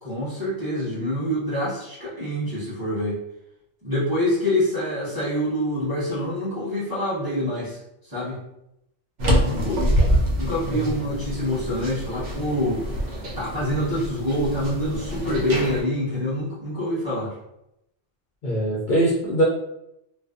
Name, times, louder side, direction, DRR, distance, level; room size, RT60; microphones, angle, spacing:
voice 1, 0.0-3.2 3.8-8.4 9.4-10.0 10.4-13.0 13.4-17.3, left 1 dB, 20° right, -9 dB, 0.7 m, -26 dB
sound 1, 9.2-15.8, equal, 85° right, 1.0 m, -25 dB
voice 2, 18.4-19.4, right 1 dB, 60° left, -5 dB, 0.5 m, -22 dB
2.6 x 2.2 x 2.3 m, 0.83 s
omnidirectional pair, 1.2 m